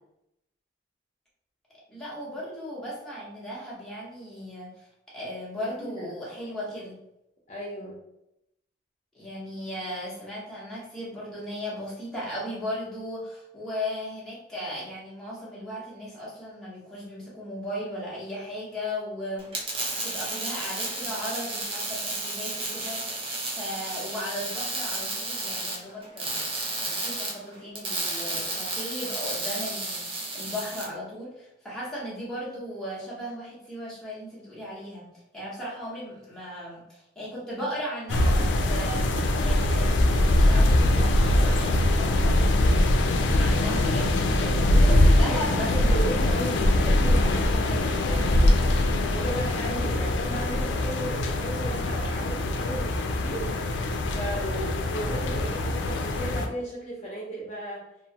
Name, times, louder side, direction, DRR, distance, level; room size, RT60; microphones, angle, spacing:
voice 1, 1.9-7.0 9.1-19.8 20.0-23.0 23.5-39.1 39.4-42.6 43.4-46.0, equal, 5° left, -8 dB, 0.9 m, -36 dB
voice 2, 5.6-6.1 7.5-8.0 44.3-48.6 49.1-53.5 54.1-57.8, right 1 dB, 40° left, -5 dB, 0.7 m, -35 dB
sound 1, 19.4-30.9, right 2 dB, 30° right, 0.6 m, -32 dB
sound 2, 38.1-56.5, left 1 dB, 75° left, 0.4 m, -22 dB
3.0 x 2.1 x 2.7 m, 0.84 s
head